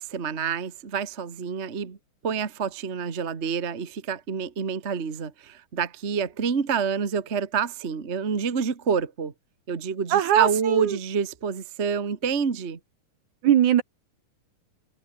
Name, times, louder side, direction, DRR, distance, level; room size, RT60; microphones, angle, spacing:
voice 1, 0.0-2.0 2.2-9.3 9.7-12.8, right 6 dB, 30° right, 1.2 m, -28 dB
voice 2, 10.1-11.0 13.4-13.8, right 10 dB, 65° right, 2.7 m, -20 dB
omnidirectional pair, 3.9 m